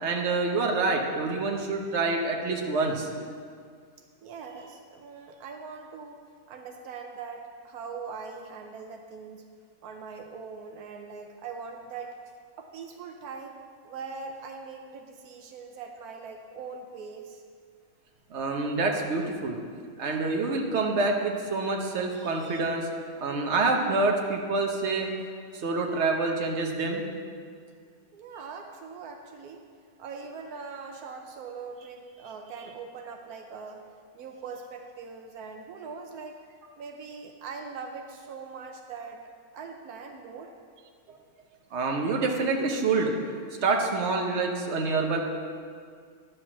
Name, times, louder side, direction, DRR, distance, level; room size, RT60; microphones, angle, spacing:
voice 1, 0.0-3.1 18.3-19.6 20.0-22.9 23.2-25.1 25.5-27.0 41.7-43.1 43.6-45.3, right 3 dB, 50° right, 1 dB, 1.3 m, -27 dB
voice 2, 4.2-6.2 6.5-9.5 9.8-12.2 12.6-13.6 13.8-17.4 28.1-29.6 30.0-33.9 34.1-36.4 36.8-39.2 39.5-40.5, right 5 dB, 80° right, 4 dB, 1.2 m, -41 dB
11.0 x 5.0 x 7.3 m, 2.1 s
omnidirectional pair, 1.6 m